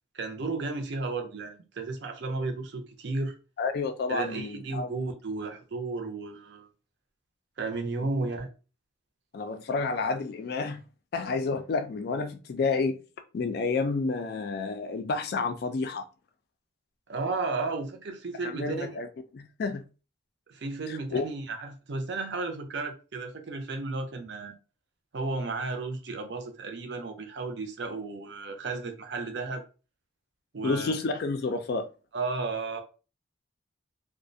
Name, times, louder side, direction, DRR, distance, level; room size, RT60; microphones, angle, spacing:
voice 1, 0.1-3.4 4.1-6.7 7.6-8.5 17.1-18.9 20.5-24.6 25.1-29.6 30.5-31.0 32.1-32.8, right 3 dB, 60° right, 0.5 m, -33 dB
voice 2, 3.6-4.9 9.3-10.8 11.1-13.0 13.3-16.0 18.4-19.1 19.3-19.8 20.9-21.3 30.6-31.9, left 4 dB, 50° left, 0.3 m, -30 dB
2.3 x 2.1 x 2.5 m
head